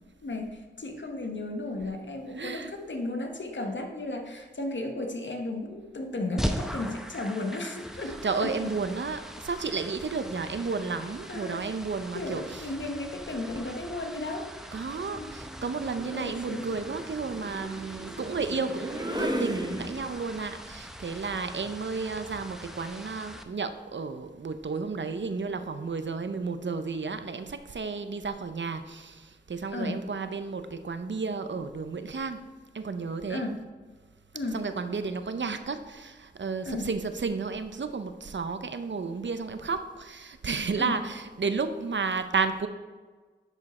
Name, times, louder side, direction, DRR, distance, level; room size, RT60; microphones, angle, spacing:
voice 1, 0.2-8.7 11.3-11.7 12.1-14.7 15.0-15.3 16.1-16.7 29.7-30.1 33.3-33.6 34.3-34.6 36.6-36.9 40.7-41.0, left 2 dB, 65° left, 4 dB, 1.2 m, -34 dB
voice 2, 2.3-2.8 8.2-12.6 14.7-32.4 32.7-33.4 34.5-42.7, right 4 dB, 65° right, 9 dB, 0.7 m, -32 dB
sound 1, 6.4-23.4, equal, ahead, 0.8 m, -41 dB
sound 2, 13.2-13.7 15.1-20.4, right 1 dB, 20° right, 1.2 m, -36 dB
10.5 x 5.0 x 4.3 m, 1.4 s
cardioid pair, 40°, 20 cm